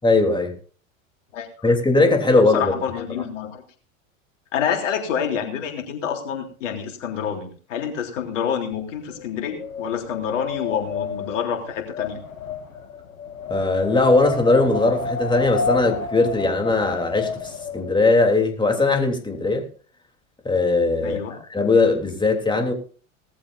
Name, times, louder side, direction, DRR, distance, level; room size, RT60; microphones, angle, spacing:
voice 1, 0.0-0.5 1.6-2.7 13.5-19.7 20.5-22.7, left 3 dB, 10° left, 3 dB, 3.5 m, -19 dB
voice 2, 2.5-3.6 4.5-12.2 21.0-21.4, left 8 dB, 65° left, 3 dB, 3.6 m, -27 dB
Wind, 8.8-18.0, left 4 dB, 80° left, 2.0 m, -31 dB
19.0 x 14.5 x 2.7 m, 0.41 s
figure-of-eight pair, 85°, 40 cm